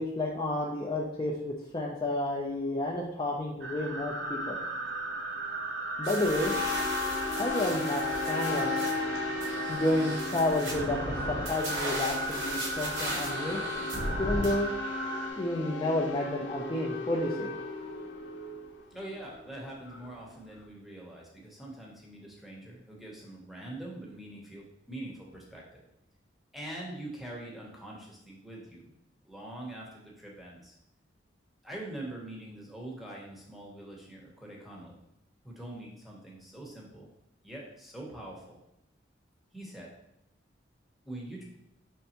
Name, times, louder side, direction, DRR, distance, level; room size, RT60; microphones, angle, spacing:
voice 1, 0.0-4.6 6.0-7.0 7.3-8.8 9.7-13.6 14.2-14.7 15.4-17.5, left 1 dB, 25° left, -2 dB, 0.4 m, -31 dB
sound 1, 3.6-15.3, right 2 dB, 65° right, 0.6 m, -37 dB
sound 2, 6.0-14.5, right 1 dB, 85° right, 1.1 m, -37 dB
sound 3, 6.3-20.6, left 4 dB, 75° left, 0.6 m, -36 dB
voice 2, 18.9-25.8 26.5-28.9 29.2-30.7 31.6-35.0 35.4-37.1 37.4-38.6 39.5-39.9 41.0-41.4, right 1 dB, ahead, -3 dB, 0.8 m, -44 dB
5.3 x 3.3 x 2.9 m, 0.81 s
head